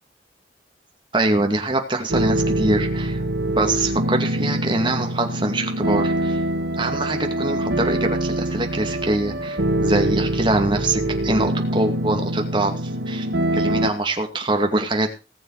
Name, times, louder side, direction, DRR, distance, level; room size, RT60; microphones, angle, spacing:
voice 1, 1.1-3.2 3.5-6.4 6.8-13.3 13.5-15.1, right 2 dB, 25° right, 4 dB, 2.3 m, -23 dB
sound 1, 2.1-13.9, right 1 dB, 85° right, 2.2 m, -24 dB
19.0 x 7.1 x 4.9 m, 0.31 s
head